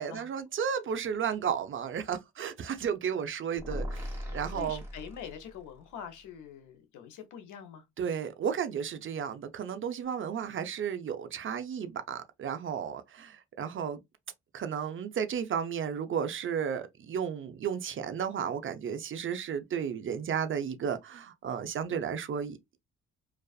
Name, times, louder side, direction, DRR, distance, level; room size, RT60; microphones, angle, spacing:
voice 1, 0.0-4.1 4.3-4.8 8.0-14.0 14.5-22.6, right 7 dB, 45° right, 0.5 m, -33 dB
sound 1, 3.6-5.7, equal, 10° right, 1.2 m, -38 dB
voice 2, 4.4-7.9, left 8 dB, 85° left, 0.7 m, -45 dB
2.4 x 2.3 x 2.3 m
cardioid pair, 90°, 30 cm